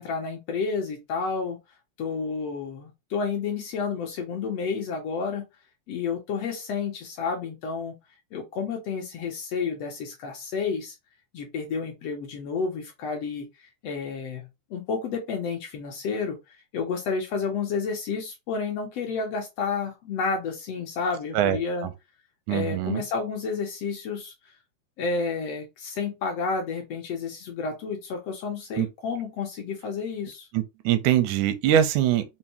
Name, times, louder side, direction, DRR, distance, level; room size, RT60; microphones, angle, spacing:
voice 1, 0.0-1.6 2.0-5.5 5.9-7.9 8.3-11.0 11.3-16.4 16.7-21.9 22.5-24.5 25.0-30.5, left 5 dB, 70° left, 1.6 m, -30 dB
voice 2, 21.3-21.9 22.5-23.0 28.8-28.9 30.5-32.3, right 11 dB, 85° right, 2.0 m, -23 dB
5.2 x 2.0 x 2.8 m
omnidirectional pair, 3.4 m